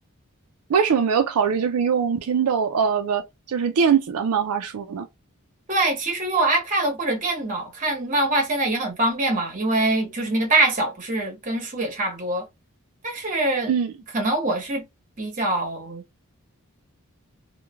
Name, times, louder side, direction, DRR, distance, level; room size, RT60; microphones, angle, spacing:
voice 1, 0.7-5.1 13.7-13.9, right 7 dB, 85° right, 0.4 m, -22 dB
voice 2, 5.7-12.5 13.0-13.7 14.1-14.8 15.2-16.0, right 2 dB, 35° right, 0.9 m, -24 dB
3.0 x 2.1 x 2.3 m
head